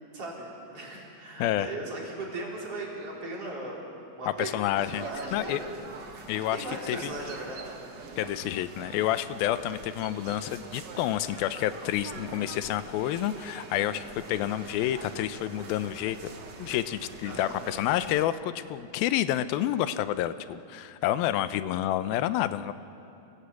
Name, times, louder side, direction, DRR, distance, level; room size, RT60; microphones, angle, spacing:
voice 1, 0.1-5.7 6.5-7.6 8.1-8.2 17.2-17.6, right 2 dB, 40° right, -4 dB, 5.2 m, -38 dB
voice 2, 4.4-5.1 5.3-5.6 6.3-7.1 8.2-16.3 16.6-22.7, left 13 dB, 85° left, 13 dB, 2.5 m, -29 dB
sound 1, 4.7-18.3, right 4 dB, 80° right, 0.9 m, -44 dB
27.0 x 18.0 x 8.3 m, 2.8 s
omnidirectional pair, 4.1 m